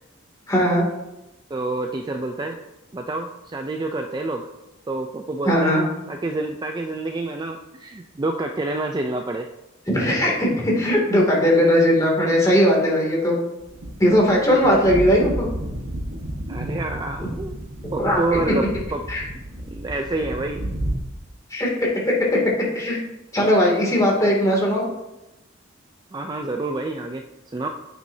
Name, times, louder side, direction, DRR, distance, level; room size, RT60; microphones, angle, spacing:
voice 1, 0.5-0.8 5.5-5.8 9.9-13.4 14.0-15.5 18.0-18.4 19.1-19.2 21.5-21.9 22.7-23.0 23.3-24.8, equal, 15° left, -3 dB, 2.4 m, -19 dB
voice 2, 1.5-2.6 2.9-4.5 4.9-5.8 6.1-9.5 14.7-14.8 16.5-17.6 17.9-19.0 19.7-20.7 26.1-27.7, right 2 dB, 20° right, 4 dB, 0.4 m, -28 dB
sound 1, 13.6-20.9, right 1 dB, 70° right, 1.4 m, -32 dB
9.1 x 8.5 x 2.7 m, 0.94 s
head